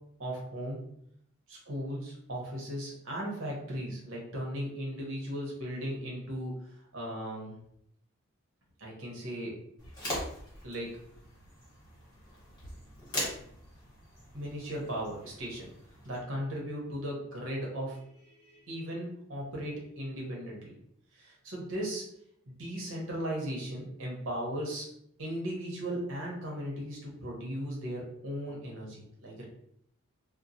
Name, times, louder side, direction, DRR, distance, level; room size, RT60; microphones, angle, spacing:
voice 1, 0.2-0.8 1.5-6.5 6.9-7.6 8.8-9.6 10.6-10.9 14.3-15.7 16.0-20.8 21.1-22.1 22.5-24.9 25.2-29.5, equal, 70° right, -2 dB, 1.0 m, -37 dB
sound 1, 9.8-16.2, left 1 dB, 20° left, 1.1 m, -41 dB
3.0 x 2.2 x 2.7 m, 0.70 s
head